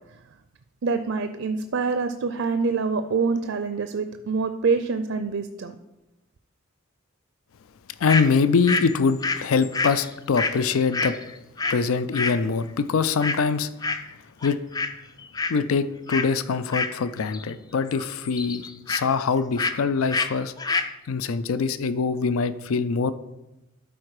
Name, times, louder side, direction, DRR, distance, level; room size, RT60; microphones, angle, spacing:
voice 1, 0.8-5.7, right 4 dB, 65° right, 9 dB, 0.5 m, -25 dB
voice 2, 8.0-11.2 11.7-13.7 14.4-14.6 15.5-20.5 21.1-23.1, left 5 dB, 80° left, 14 dB, 0.4 m, -23 dB
sound 1, 8.1-8.3 8.6-11.8 12.1-12.4 13.2-13.5 13.8-14.1 14.4-14.9 15.2-15.6 16.1-16.3 16.7-17.5 17.7-19.0 19.6-19.8 20.1-20.3 20.6-20.9, left 3 dB, 20° left, 0.4 m, -27 dB
12.0 x 4.5 x 4.8 m, 0.96 s
head